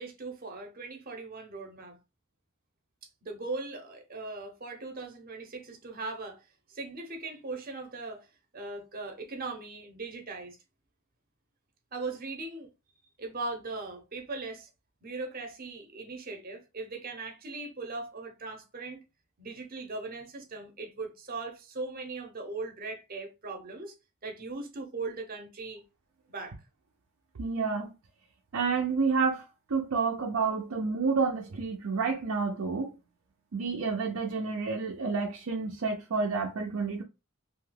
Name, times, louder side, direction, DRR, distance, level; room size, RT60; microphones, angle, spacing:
voice 1, 0.0-2.0 3.2-6.4 6.7-8.3 8.5-10.6 11.9-12.7 13.2-14.7 15.0-19.0 19.4-23.9 24.2-25.8 26.3-26.6, right 3 dB, 45° right, 0.7 m, -39 dB
voice 2, 27.4-27.9 28.5-33.0 33.5-37.0, right 4 dB, 90° right, 0.5 m, -29 dB
2.7 x 2.2 x 3.2 m
head